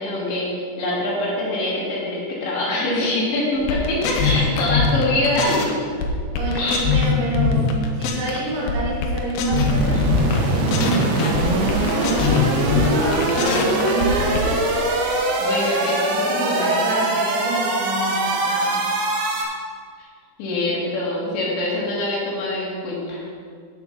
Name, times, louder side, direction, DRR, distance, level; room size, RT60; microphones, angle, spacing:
voice 1, 0.0-5.7 6.6-6.8 15.4-16.8 20.0-20.1 20.4-23.2, left 1 dB, 90° left, -5 dB, 4.6 m, -24 dB
sound 1, 3.6-5.7 6.0-8.4 8.7-10.4 10.7-14.5, left 5 dB, 70° left, 2.6 m, -22 dB
voice 2, 6.3-7.7 8.0-12.2 12.6-14.9 15.6-18.9, right 2 dB, 70° right, -4 dB, 3.8 m, -28 dB
sound 2, 9.5-19.4, right 2 dB, 90° right, 3.8 m, -22 dB
13.0 x 6.3 x 5.5 m, 2.1 s
omnidirectional pair, 5.0 m